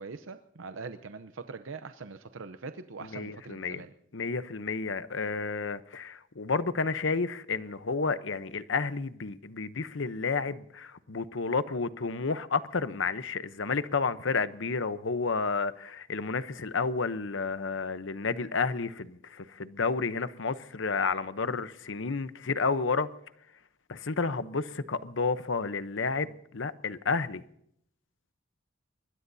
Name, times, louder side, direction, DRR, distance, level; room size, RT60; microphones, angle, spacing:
voice 1, 0.0-3.9, right 4 dB, 75° right, 0.7 m, -42 dB
voice 2, 3.1-3.8 4.1-23.1 23.9-27.4, left 4 dB, 70° left, 0.8 m, -31 dB
25.0 x 21.0 x 2.7 m
head